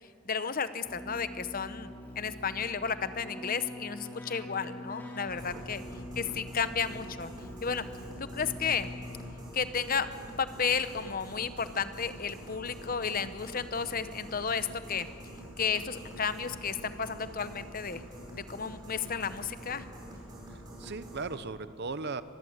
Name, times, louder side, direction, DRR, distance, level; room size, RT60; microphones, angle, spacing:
voice 1, 0.2-1.9 2.2-5.8 6.2-7.3 7.6-7.8 8.3-8.9 9.5-10.1 10.4-15.1 15.6-18.0 18.3-19.8, left 6 dB, 40° left, 12 dB, 0.9 m, -32 dB
Keyboard (musical), 0.8-9.6, left 1 dB, 10° left, 3.2 m, -44 dB
sound 1, 5.2-21.4, right 1 dB, 15° right, 5.2 m, -46 dB
voice 2, 20.5-22.2, right 4 dB, 50° right, 13 dB, 0.8 m, -38 dB
25.0 x 21.0 x 8.1 m, 2.5 s
head